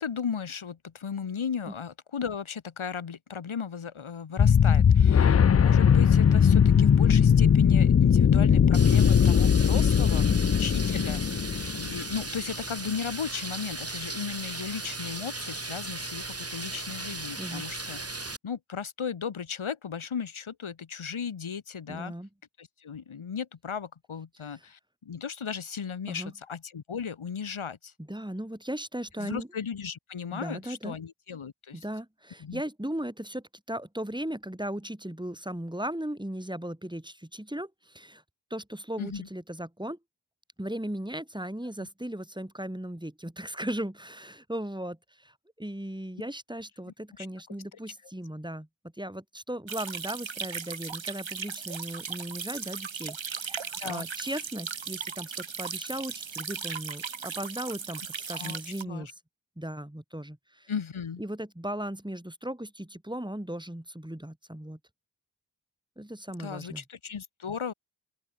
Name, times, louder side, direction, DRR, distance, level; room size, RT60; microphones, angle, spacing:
voice 1, 0.0-11.4 11.8-18.0 18.4-22.1 22.6-27.9 29.2-31.8 32.4-32.6 39.0-39.3 41.8-41.9 47.2-47.3 53.8-54.1 58.4-59.1 60.7-61.2 66.4-67.7, left 6 dB, 85° left, 2.6 m, -36 dB
sound 1, 4.4-12.1, left 7 dB, 35° left, 0.5 m, -20 dB
sound 2, 8.7-18.4, right 2 dB, 30° right, 3.3 m, -37 dB
voice 2, 21.9-22.3 26.1-26.3 28.0-29.5 30.3-31.0 31.7-38.2 38.5-40.0 40.6-48.7 49.0-59.1 59.6-60.7 61.2-64.8 66.0-66.8, right 1 dB, 10° right, 4.9 m, -37 dB
sound 3, 49.7-58.8, right 6 dB, 70° right, 2.4 m, -37 dB
open air
cardioid pair, 40°, 48 cm